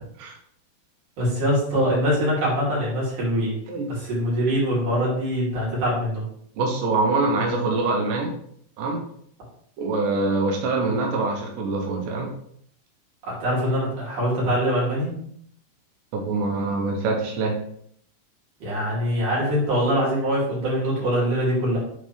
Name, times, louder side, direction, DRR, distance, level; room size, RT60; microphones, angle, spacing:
voice 1, 1.2-3.6 3.9-6.2 13.2-15.1 18.6-21.8, equal, 45° right, -6 dB, 4.1 m, -23 dB
voice 2, 6.6-8.3 8.8-9.0 9.8-12.3 16.1-17.6, right 3 dB, 85° right, 1 dB, 1.9 m, -24 dB
9.0 x 4.2 x 3.5 m, 0.66 s
omnidirectional pair, 5.4 m